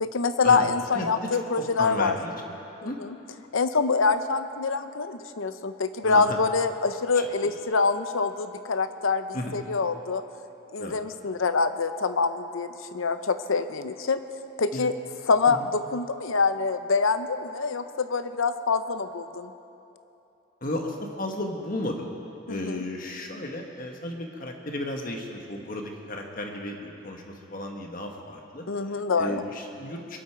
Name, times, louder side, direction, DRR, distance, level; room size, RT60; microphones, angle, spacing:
voice 1, 0.0-2.2 2.8-3.2 3.5-9.3 9.5-10.2 10.7-14.2 14.6-14.9 15.3-19.5 22.5-22.8 28.7-29.4, left 4 dB, 70° left, 11 dB, 0.7 m, -25 dB
voice 2, 0.9-2.5 2.8-3.0 6.0-6.4 7.1-7.2 9.3-9.5 10.8-11.0 14.7-14.9 15.5-15.7 20.6-22.1 22.5-28.6 29.2-30.2, left 1 dB, 40° left, 2 dB, 1.4 m, -34 dB
23.0 x 12.5 x 4.6 m, 3.0 s
head